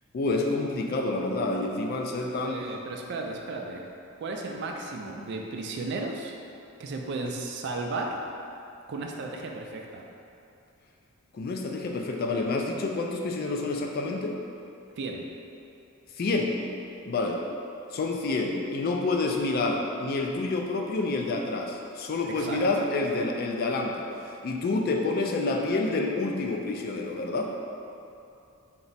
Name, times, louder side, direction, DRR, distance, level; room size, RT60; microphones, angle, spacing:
voice 1, 0.1-2.6 11.3-14.3 16.2-16.6 17.1-17.4 17.9-24.0 24.4-27.5, left 3 dB, 45° left, 1 dB, 0.3 m, -28 dB
voice 2, 2.4-3.8 4.2-6.3 6.8-8.2 8.9-10.1 15.0-15.2 22.2-22.6, right 3 dB, 55° right, 1 dB, 0.4 m, -34 dB
4.5 x 2.0 x 4.0 m, 2.7 s
head